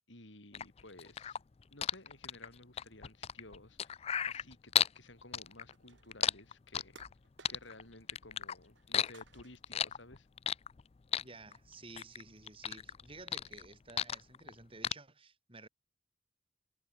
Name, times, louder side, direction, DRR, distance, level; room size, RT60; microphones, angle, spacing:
voice 1, 0.1-1.4 1.7-7.0 7.5-10.3, left 2 dB, 75° left, 6.6 m, -55 dB
sound 1, 0.5-5.0 5.3-7.1 7.4-8.5 8.9-10.8 11.1-12.2 12.5-14.5 14.8-14.9, left 9 dB, 30° left, 0.4 m, -34 dB
sound 2, 5.7-6.3 7.0-8.0 8.3-8.9 9.1-9.8, right 4 dB, 70° right, 4.0 m, -61 dB
voice 2, 11.2-15.7, right 3 dB, 30° right, 5.2 m, -53 dB
head